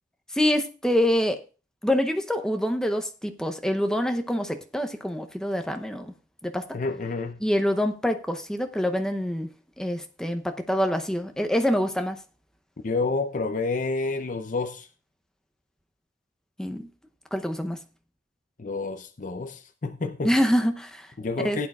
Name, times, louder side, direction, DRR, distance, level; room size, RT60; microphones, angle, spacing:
voice 1, 0.3-1.4 1.8-6.1 6.4-6.8 7.4-9.5 9.8-12.2 16.6-16.9 17.3-17.8 20.2-21.1 21.4-21.6, equal, 5° left, 0.7 m, -26 dB
voice 2, 6.7-7.4 12.8-14.9 18.6-20.3 21.2-21.7, left 3 dB, 45° left, 0.6 m, -29 dB
16.0 x 8.7 x 2.4 m
head